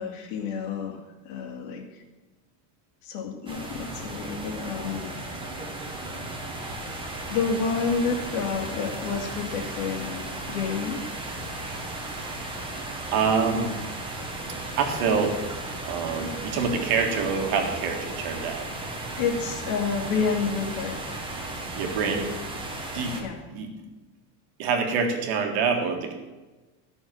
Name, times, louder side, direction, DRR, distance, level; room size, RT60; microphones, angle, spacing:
voice 1, 0.0-2.0 3.0-5.2 7.3-11.0 19.2-21.0 22.0-22.2 23.2-23.4, left 5 dB, 65° left, 2 dB, 2.5 m, -29 dB
sound 1, 3.5-23.2, right 2 dB, 10° right, 1.2 m, -35 dB
voice 2, 13.1-13.8 14.8-15.4 15.8-18.7 21.8-22.3 22.9-23.2 23.5-23.7 24.6-26.1, right 5 dB, 50° right, 4 dB, 1.9 m, -26 dB
13.5 x 6.4 x 7.7 m, 1.2 s
cardioid pair, 180°, 48 cm